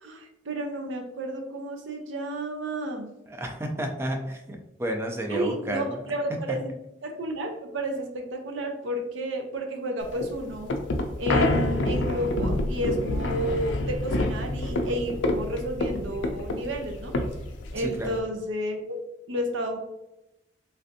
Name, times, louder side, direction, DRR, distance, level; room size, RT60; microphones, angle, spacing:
voice 1, 0.0-3.1 5.3-6.7 7.0-10.7 11.2-17.2 17.7-19.0 19.3-19.8, right 1 dB, 80° right, 3 dB, 0.6 m, -31 dB
voice 2, 3.3-6.0 17.8-18.2, equal, 15° right, 3 dB, 0.4 m, -31 dB
sound 1, 10.1-18.2, left 1 dB, 70° left, 0.4 m, -28 dB
3.2 x 2.5 x 2.7 m, 0.89 s
head